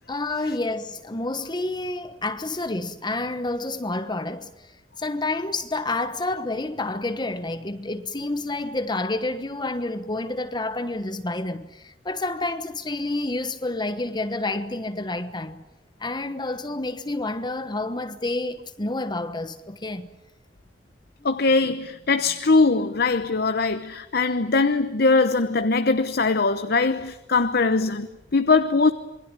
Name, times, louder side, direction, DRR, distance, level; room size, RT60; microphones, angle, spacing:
voice 1, 0.1-4.7 5.0-15.6 16.0-20.1, left 2 dB, 25° left, 1.1 m, -29 dB
voice 2, 21.2-28.9, left 3 dB, 60° left, 1.0 m, -21 dB
27.5 x 22.5 x 9.0 m
head